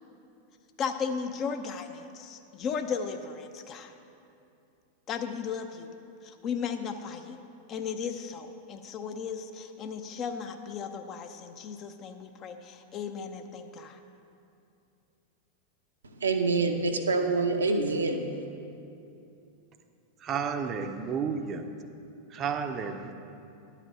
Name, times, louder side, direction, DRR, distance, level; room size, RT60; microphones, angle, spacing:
voice 1, 0.8-3.9 5.1-5.9 6.2-7.4 7.7-14.0, left 6 dB, 30° left, 7 dB, 0.6 m, -35 dB
voice 2, 16.2-18.2, right 3 dB, 75° right, 4 dB, 0.7 m, -26 dB
voice 3, 20.2-21.6 22.3-23.1, right 6 dB, 30° right, 7 dB, 0.6 m, -32 dB
11.0 x 5.0 x 6.5 m, 2.7 s
figure-of-eight pair, 90°, 0 cm